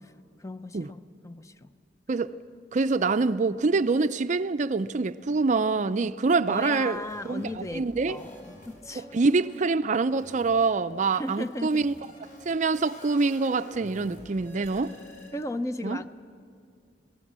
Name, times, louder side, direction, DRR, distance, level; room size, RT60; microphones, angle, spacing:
voice 1, 0.4-1.7 6.5-9.1 11.1-11.9 15.3-16.1, left 1 dB, 15° left, 0.6 m, -36 dB
voice 2, 2.7-8.2 9.0-11.9 12.5-14.9 15.8-16.0, right 4 dB, 40° right, 0.4 m, -25 dB
sound 1, 6.9-9.7 10.1-15.3, left 1 dB, 45° left, 4.9 m, -50 dB
27.0 x 17.5 x 7.4 m
head